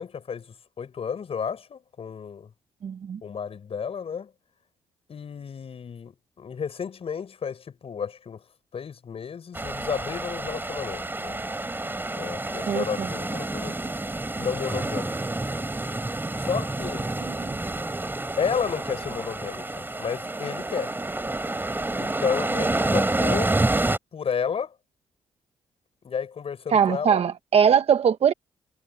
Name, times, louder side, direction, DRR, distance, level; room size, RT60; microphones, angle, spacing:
voice 1, 0.0-2.5 3.2-4.3 5.1-8.4 8.7-11.4 12.1-13.9 14.4-15.1 16.4-17.1 18.4-21.0 22.0-23.5 24.1-24.7 26.0-27.2, left 7 dB, 55° left, 6.9 m, -32 dB
voice 2, 2.8-3.2 12.7-13.1 26.7-28.3, right 7 dB, 60° right, 1.1 m, -21 dB
sound 1, 9.5-24.0, right 2 dB, 20° right, 3.8 m, -28 dB
supercardioid pair, 60°, 12 cm